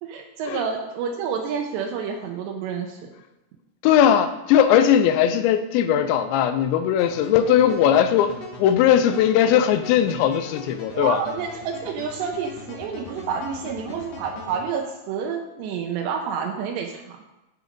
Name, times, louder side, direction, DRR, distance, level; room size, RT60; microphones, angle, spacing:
voice 1, 0.0-3.1 10.9-17.2, right 6 dB, 80° right, 2.9 m, -29 dB
voice 2, 3.8-11.2, left 9 dB, 90° left, 2.9 m, -19 dB
sound 1, 7.0-14.6, left 3 dB, 65° left, 1.6 m, -40 dB
12.0 x 6.3 x 5.1 m
omnidirectional pair, 5.1 m